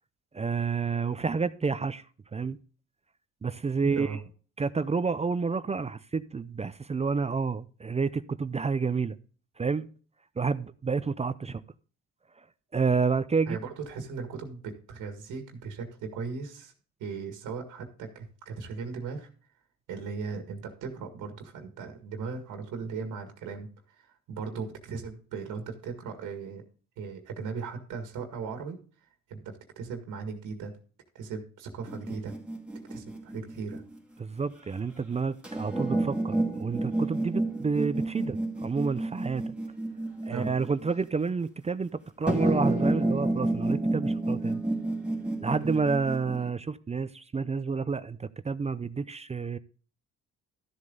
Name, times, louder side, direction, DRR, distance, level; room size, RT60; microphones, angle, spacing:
voice 1, 0.3-2.0 2.3-2.6 3.4-4.2 4.6-9.2 9.6-9.9 10.4-11.6 12.7-13.6 34.2-39.5 40.3-44.6 45.4-49.6, right 5 dB, 20° right, 0.5 m, -29 dB
voice 2, 3.8-4.2 13.5-16.7 17.0-19.3 19.9-26.6 27.0-28.8 29.3-30.7 31.1-32.4 32.9-33.8 40.3-40.5 45.6-45.7, right 5 dB, 85° right, 1.8 m, -38 dB
sound 1, 31.9-33.9 35.4-40.9 42.3-46.5, right 2 dB, 5° right, 2.3 m, -29 dB
12.5 x 7.5 x 3.8 m
cardioid pair, 90°, 30 cm